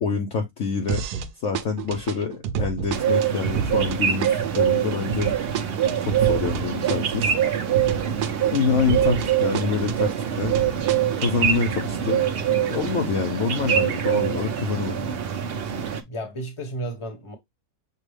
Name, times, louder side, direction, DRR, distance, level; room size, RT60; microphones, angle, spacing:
voice 1, 0.0-1.0 1.4-5.3 6.0-7.3 8.5-10.5 11.2-12.2 12.5-15.0, left 5 dB, 60° left, 0.9 m, -26 dB
sound 1, 0.9-1.3 1.5-9.3 9.5-11.5, right 8 dB, 90° right, 1.2 m, -30 dB
sound 2, 2.9-16.0, right 9 dB, 55° right, 0.7 m, -24 dB
voice 2, 16.1-17.3, right 1 dB, 25° left, 1.0 m, -32 dB
6.6 x 2.3 x 3.2 m
omnidirectional pair, 1.6 m